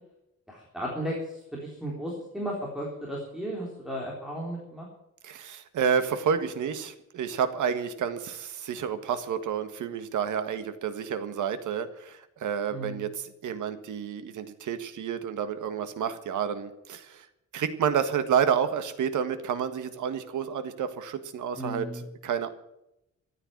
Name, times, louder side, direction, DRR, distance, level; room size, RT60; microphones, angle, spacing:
voice 1, 0.5-4.9 12.7-13.1 21.6-22.0, equal, ahead, -4 dB, 3.7 m, -35 dB
voice 2, 5.2-17.3 17.5-22.5, right 7 dB, 85° right, 10 dB, 1.6 m, -30 dB
14.5 x 9.2 x 9.7 m, 0.85 s
wide cardioid pair, 150°, 30 cm